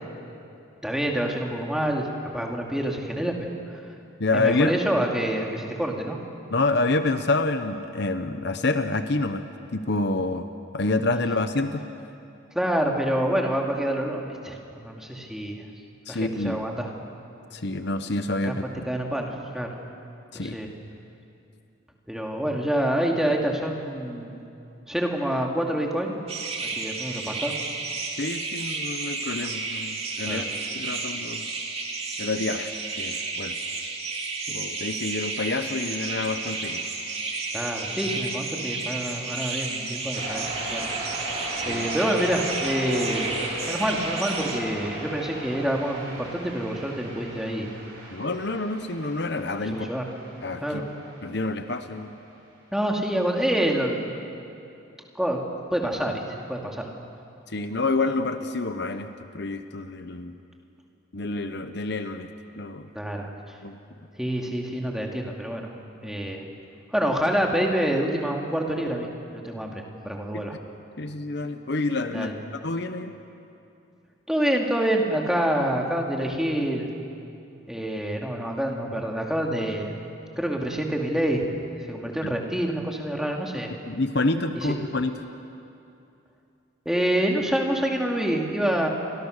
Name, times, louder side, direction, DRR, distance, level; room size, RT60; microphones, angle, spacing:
voice 1, 0.8-2.1 2.3-3.9 4.3-6.2 12.5-15.7 16.1-16.9 18.4-18.5 18.9-19.7 20.3-20.7 22.1-24.3 24.9-26.2 26.6-27.5 30.2-30.6 37.5-40.9 41.7-43.3 43.7-47.7 48.0-48.1 49.6-50.0 50.6-50.8 52.7-54.1 55.1-55.4 55.7-56.9 62.9-63.6 64.2-65.7 66.0-66.4 66.9-70.6 72.1-72.3 74.3-76.9 77.7-79.9 80.4-81.5 81.9-83.7 84.5-84.7 86.9-88.9, right 1 dB, 5° right, 0 dB, 2.5 m, -27 dB
voice 2, 4.2-4.7 6.5-9.4 9.7-10.5 10.7-11.8 16.1-16.6 17.5-18.6 20.3-20.6 28.2-30.4 30.7-31.4 32.2-32.7 33.0-33.6 34.5-36.8 41.7-41.9 48.1-49.9 50.4-50.8 51.2-52.1 57.5-60.3 61.1-62.3 62.6-62.9 63.6-63.8 71.0-73.2 83.9-85.2, left 2 dB, 55° left, 9 dB, 0.9 m, -27 dB
sound 1, 26.3-44.6, right 3 dB, 30° right, 2.6 m, -32 dB
sound 2, 40.1-51.6, right 1 dB, 50° right, 7.6 m, -37 dB
30.0 x 25.0 x 6.6 m, 2.6 s
head